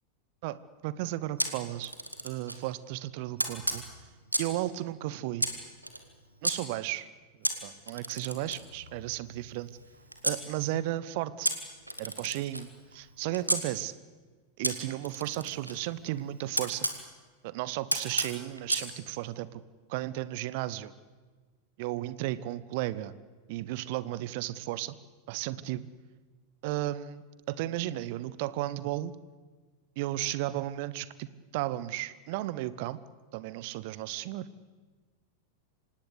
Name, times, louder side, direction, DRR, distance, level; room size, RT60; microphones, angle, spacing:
voice 1, 0.8-1.9 2.2-3.8 4.4-5.5 6.4-7.1 7.4-9.7 10.2-11.5 12.0-13.9 14.6-16.9 17.4-19.6 19.9-20.9 21.8-23.1 23.5-24.9 25.3-25.9 26.6-29.1 30.0-31.3 31.5-33.0 33.3-34.5, right 15 dB, 50° right, 17 dB, 1.0 m, -34 dB
Camera, 1.4-2.6 3.4-4.6 5.4-6.5 7.4-10.4 11.4-13.6 14.6-17.0 17.9-18.9, right 1 dB, 85° right, 2.4 m, -33 dB
26.0 x 19.0 x 8.3 m, 1.4 s
figure-of-eight pair, 90°, 0 cm